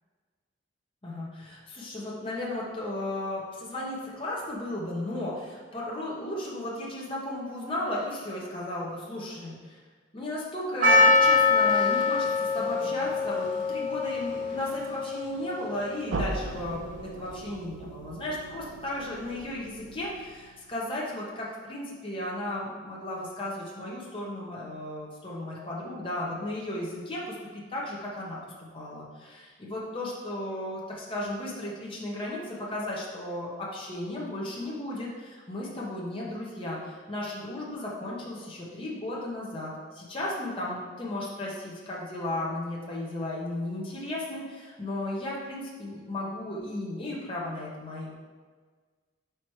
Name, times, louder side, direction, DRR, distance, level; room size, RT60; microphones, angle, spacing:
voice 1, 1.0-9.8 10.1-28.4 28.7-48.1, left 1 dB, 25° left, -5 dB, 1.1 m, -35 dB
Percussion, 10.8-15.7, left 3 dB, 40° right, 1.1 m, -24 dB
sound 1, 16.1-20.9, right 2 dB, 70° right, 0.5 m, -38 dB
5.0 x 4.6 x 4.7 m, 1.5 s
head